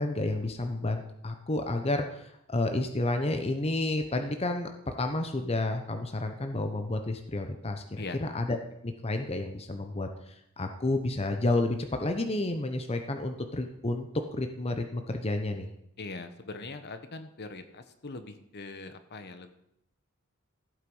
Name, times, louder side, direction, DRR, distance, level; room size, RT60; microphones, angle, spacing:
voice 1, 0.0-8.6 8.8-15.7, left 2 dB, 30° left, 5 dB, 0.9 m, -31 dB
voice 2, 16.0-19.5, left 3 dB, 50° left, 9 dB, 1.0 m, -41 dB
14.5 x 8.2 x 5.5 m, 0.79 s
head